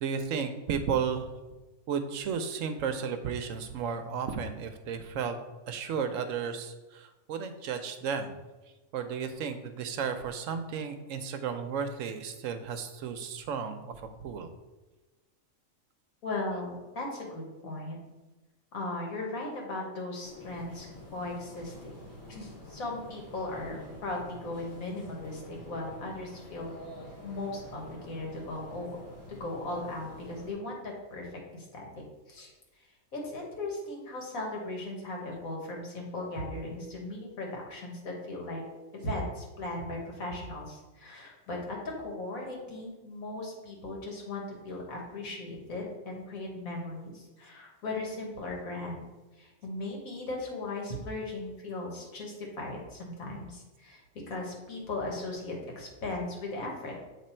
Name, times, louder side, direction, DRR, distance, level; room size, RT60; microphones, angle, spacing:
voice 1, 0.0-1.3 1.9-5.4 5.7-8.3 8.9-13.9 14.2-14.5, right 6 dB, 75° right, 8 dB, 0.9 m, -33 dB
voice 2, 16.2-18.0 18.7-20.9 21.1-21.9 22.3-26.8 27.2-29.0 29.3-32.5 33.1-38.6 38.9-49.0 49.4-54.0 54.3-57.0, left 2 dB, 85° left, -1 dB, 1.8 m, -37 dB
sound 1, 20.2-30.5, left 1 dB, 40° left, 2.4 m, -48 dB
7.5 x 3.2 x 4.3 m, 1.2 s
omnidirectional pair, 1.4 m